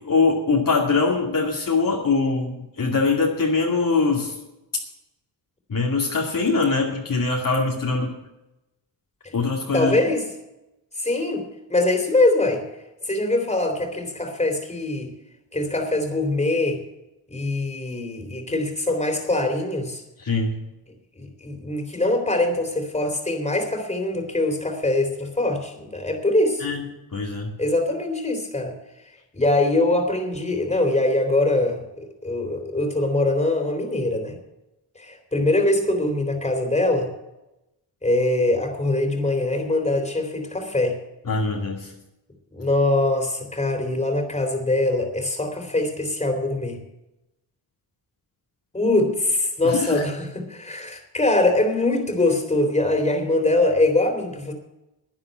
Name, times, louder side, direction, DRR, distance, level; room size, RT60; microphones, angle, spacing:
voice 1, 0.0-4.3 4.7-4.8 5.7-8.1 9.3-10.0 20.2-20.6 26.6-26.8 27.1-27.5 41.3-41.9 49.6-50.0, left 4 dB, 45° left, -1 dB, 2.5 m, -22 dB
voice 2, 9.7-10.2 11.0-12.6 13.1-15.1 15.5-16.8 17.3-20.0 21.2-26.7 27.6-28.7 29.3-34.4 35.0-37.1 38.0-41.0 42.5-46.8 48.7-54.5, left 2 dB, 15° left, 4 dB, 3.5 m, -23 dB
11.0 x 9.7 x 7.7 m, 0.92 s
cardioid pair, 80°, 44 cm